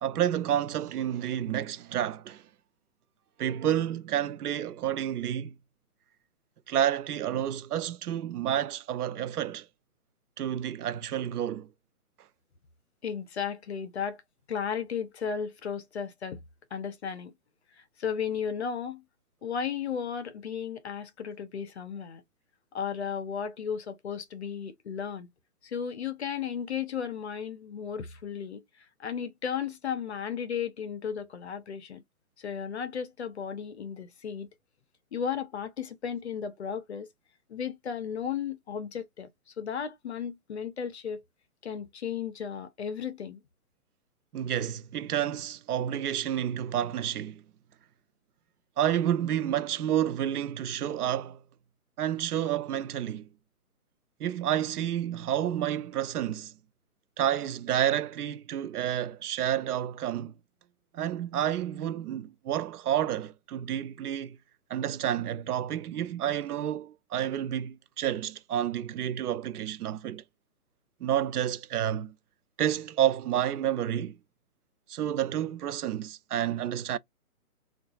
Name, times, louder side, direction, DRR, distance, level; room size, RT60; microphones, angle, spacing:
voice 1, 0.0-2.4 3.4-5.5 6.7-9.7 10.4-11.7 44.3-47.4 48.8-51.4 52.0-53.3 54.2-56.5 57.2-60.3 60.9-64.4 64.7-70.2 71.0-72.1 72.6-74.2 74.9-77.0, right 10 dB, 80° right, 0.6 m, -30 dB
voice 2, 13.0-14.2 14.5-16.4 16.7-17.3 17.8-19.0 19.4-22.2 22.7-25.3 25.6-32.0 32.4-34.5 35.1-37.1 37.5-39.3 39.6-41.2 41.6-43.4, left 7 dB, 45° left, 0.7 m, -34 dB
3.8 x 2.4 x 2.3 m
hypercardioid pair, 165°, 45 cm